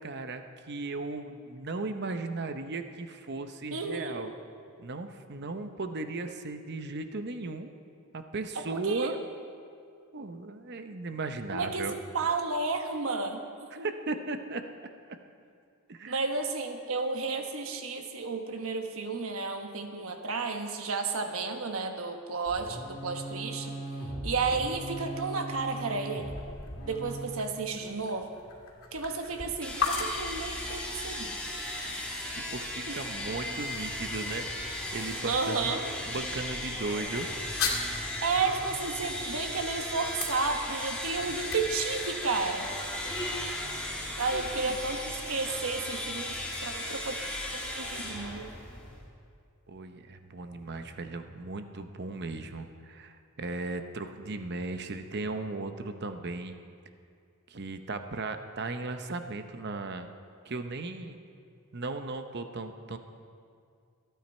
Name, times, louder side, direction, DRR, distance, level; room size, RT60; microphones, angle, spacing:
voice 1, 0.0-4.3 4.8-7.7 8.1-9.2 10.1-11.9 13.7-14.6 15.9-16.2 32.3-35.7 36.1-37.3 44.3-44.7 49.7-56.6 57.5-60.1 60.4-61.2 61.7-63.0, right 3 dB, 50° right, 8 dB, 0.8 m, -36 dB
voice 2, 3.7-4.3 8.5-9.1 11.5-11.9 12.1-13.4 13.8-13.9 16.0-23.8 24.2-26.3 26.8-28.4 28.9-31.4 32.9-33.1 35.2-35.9 38.2-42.7 43.1-43.2 44.2-47.2 47.5-48.5, right 4 dB, 75° right, 5 dB, 1.2 m, -32 dB
sound 1, 22.5-27.3, right 1 dB, 50° left, 2.8 m, -39 dB
sound 2, 25.1-43.0, left 5 dB, 75° left, 2.5 m, -41 dB
sound 3, 29.6-49.1, left 1 dB, 5° left, 2.1 m, -36 dB
25.5 x 9.2 x 4.4 m, 2.4 s
head